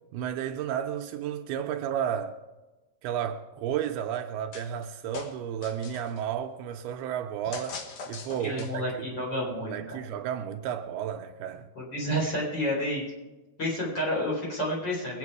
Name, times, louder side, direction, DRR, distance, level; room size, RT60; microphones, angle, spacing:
voice 1, 0.1-2.4 3.0-7.8 8.1-9.1 9.4-11.7, right 9 dB, 80° right, 2.5 m, -32 dB
sound 1, 4.5-4.9 5.1-6.2 7.5-8.9, left 4 dB, 80° left, 1.3 m, -40 dB
voice 2, 8.4-10.0 11.8-13.0 13.6-15.2, equal, 25° left, 4.3 m, -30 dB
22.5 x 9.0 x 4.8 m
omnidirectional pair, 4.6 m